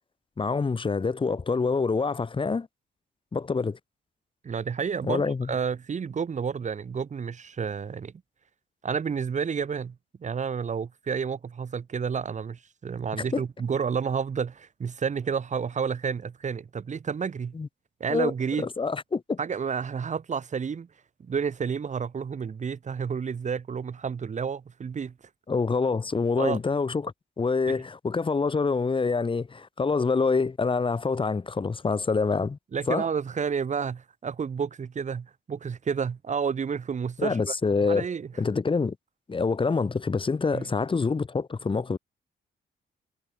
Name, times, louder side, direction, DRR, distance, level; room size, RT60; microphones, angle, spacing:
voice 1, 0.4-2.7 3.3-3.8 5.0-5.5 13.2-13.4 17.5-17.7 18.1-18.3 18.6-19.4 25.5-32.6 32.9-33.1 37.2-38.1 38.4-39.0 39.3-42.0, left 4 dB, 30° left, 2.1 m, -26 dB
voice 2, 4.4-5.2 5.5-8.1 8.8-17.5 18.0-18.7 19.4-20.9 21.2-25.1 26.4-26.6 27.7-27.8 32.7-37.5 37.9-38.3 40.5-40.7, right 6 dB, 40° right, 2.3 m, -30 dB
cardioid pair, 95°, 18 cm